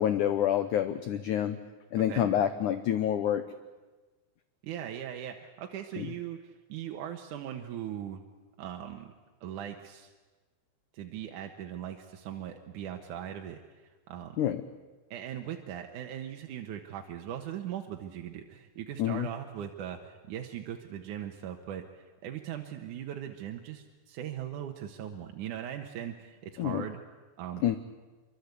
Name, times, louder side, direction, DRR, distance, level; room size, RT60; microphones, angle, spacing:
voice 1, 0.0-1.6 1.9-3.4 6.0-6.1 14.4-14.6 19.0-19.3 26.6-26.8 27.6-27.8, left 10 dB, 90° left, 10 dB, 1.7 m, -27 dB
voice 2, 4.6-8.2 8.6-9.1 9.4-10.1 10.9-13.6 14.1-14.4 15.1-27.0 27.4-27.8, right 10 dB, 65° right, 4 dB, 2.2 m, -39 dB
25.5 x 24.0 x 8.3 m, 1.3 s
omnidirectional pair, 4.9 m